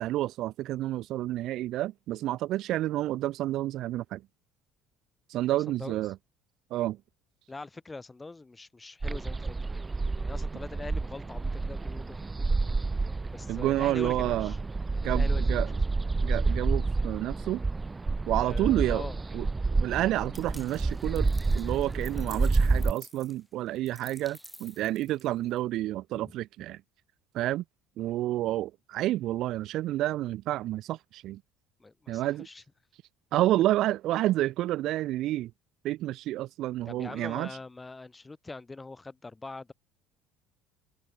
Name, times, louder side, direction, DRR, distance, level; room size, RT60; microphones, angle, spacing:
voice 1, 0.0-4.2 5.3-6.1 6.7-7.0 13.5-14.5 15.0-15.7 16.2-17.6 18.3-19.1 19.3-19.5 19.7-26.8 27.3-27.6 28.0-31.4 32.1-32.5 33.3-35.5 35.8-37.5, right 15 dB, 65° right, 0.6 m, -29 dB
voice 2, 5.5-6.0 7.5-9.8 10.1-12.6 13.3-14.6 14.9-15.6 18.4-19.2 26.1-26.3 31.8-32.6 36.9-39.7, left 3 dB, 20° left, 4.4 m, -43 dB
sound 1, 9.0-22.9, right 3 dB, 20° right, 0.7 m, -29 dB
sound 2, 20.3-25.6, equal, ahead, 1.7 m, -51 dB
hypercardioid pair, 65°, 0 cm